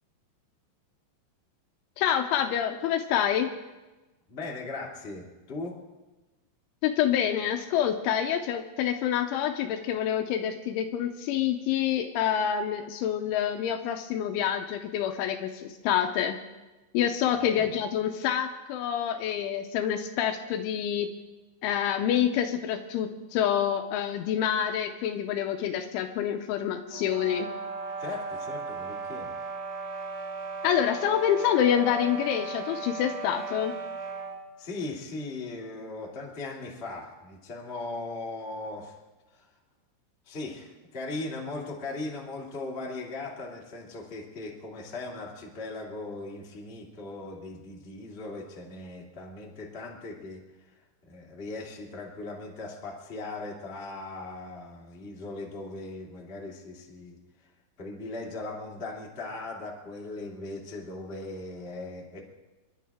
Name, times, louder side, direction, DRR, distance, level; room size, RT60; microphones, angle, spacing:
voice 1, 2.0-3.5 6.8-16.4 16.9-21.1 21.6-27.5 30.6-33.8, left 9 dB, 80° left, 7 dB, 2.9 m, -27 dB
voice 2, 4.3-5.7 17.3-17.7 28.0-29.3 34.6-39.0 39.3-39.5 40.2-50.7 51.0-57.2 57.8-62.3, left 2 dB, 50° left, -2 dB, 0.7 m, -38 dB
sound 1, 26.9-34.4, right 4 dB, 70° right, 4.3 m, -36 dB
28.5 x 11.0 x 3.6 m, 1.1 s
omnidirectional pair, 5.9 m